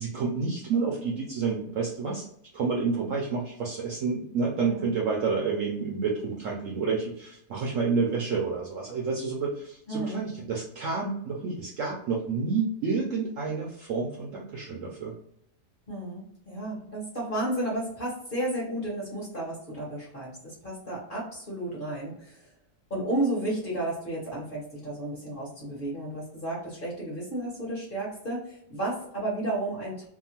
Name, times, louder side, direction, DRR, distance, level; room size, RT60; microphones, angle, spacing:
voice 1, 0.0-2.3 2.5-15.1, right 4 dB, 70° right, -1 dB, 0.7 m, -29 dB
voice 2, 9.9-10.2 15.9-22.5 22.9-30.0, right 1 dB, 45° left, -4 dB, 0.8 m, -32 dB
2.8 x 2.3 x 2.7 m, 0.72 s
omnidirectional pair, 1.8 m